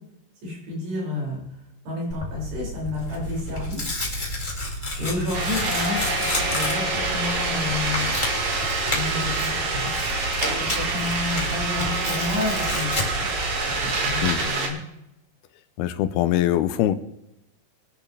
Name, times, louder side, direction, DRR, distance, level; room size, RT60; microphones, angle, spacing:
voice 1, 0.4-1.4 1.8-3.8 5.0-8.1 8.9-13.4 13.8-14.8, left 2 dB, 80° right, -4 dB, 8.3 m, -31 dB
Tearing, 2.1-14.5, left 1 dB, 15° left, 2.0 m, -31 dB
sound 1, 4.9-10.8, left 6 dB, 50° left, 2.7 m, -37 dB
sound 2, 5.3-14.7, right 3 dB, 50° right, 3.0 m, -27 dB
voice 2, 15.8-16.9, left 12 dB, 80° left, 12 dB, 2.6 m, -22 dB
23.0 x 10.5 x 3.4 m, 0.84 s
omnidirectional pair, 4.7 m